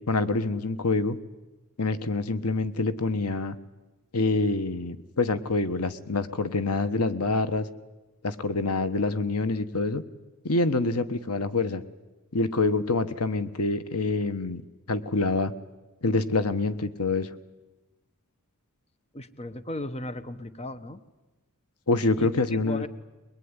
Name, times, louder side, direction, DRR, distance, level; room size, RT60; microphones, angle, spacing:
voice 1, 0.1-1.2 1.8-3.6 4.1-7.7 8.2-10.0 10.4-11.8 12.3-14.6 14.9-15.5 16.0-17.3 21.9-22.8, left 3 dB, 80° left, 12 dB, 1.2 m, -26 dB
voice 2, 19.1-21.0 22.2-22.9, left 1 dB, 30° left, 12 dB, 1.1 m, -36 dB
22.5 x 22.5 x 9.8 m, 1.1 s
head